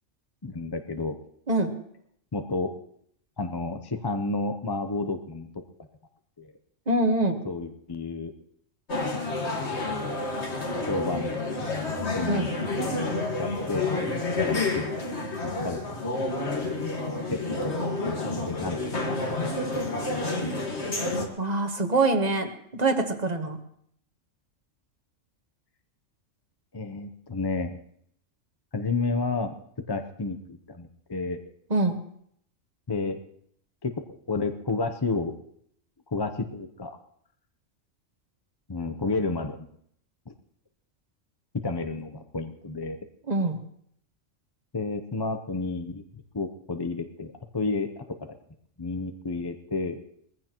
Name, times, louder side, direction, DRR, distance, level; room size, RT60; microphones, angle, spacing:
voice 1, 0.4-1.2 2.3-2.7 3.4-5.5 6.4-6.5 7.4-8.3 10.8-11.4 11.7-11.8 12.1-12.5 12.8-12.9 13.4-13.9 14.4-14.9 15.4-16.0 17.3-19.2 20.4-20.9 26.7-27.8 28.7-29.5 29.9-31.4 32.9-33.2 33.8-35.3 36.1-37.0 38.7-39.6 40.3-40.4 41.6-43.0 44.7-46.0 46.3-48.0 48.8-50.0, left 3 dB, 25° left, 7 dB, 0.6 m, -31 dB
voice 2, 6.9-7.4 12.3-12.5 21.4-23.6 31.7-32.0 43.3-43.6, right 2 dB, 35° right, 6 dB, 1.4 m, -24 dB
sound 1, 8.9-21.3, left 2 dB, 55° left, 2.0 m, -29 dB
20.5 x 15.0 x 3.0 m, 0.67 s
omnidirectional pair, 1.3 m